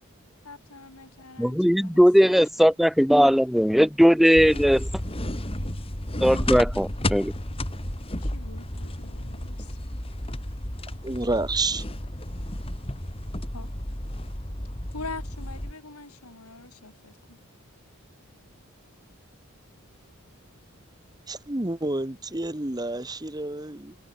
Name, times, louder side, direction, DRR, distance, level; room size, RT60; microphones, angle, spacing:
voice 1, 0.4-2.3 2.6-2.7 8.2-9.8 13.5-13.7 14.9-17.4, left 3 dB, 90° left, 3.8 m, -43 dB
voice 2, 1.4-4.9 6.2-7.3, equal, ahead, 0.6 m, -19 dB
sound 1, 4.3-15.7, left 1 dB, 25° left, 3.1 m, -32 dB
voice 3, 11.0-11.8 21.3-23.9, right 2 dB, 20° right, 1.2 m, -29 dB
head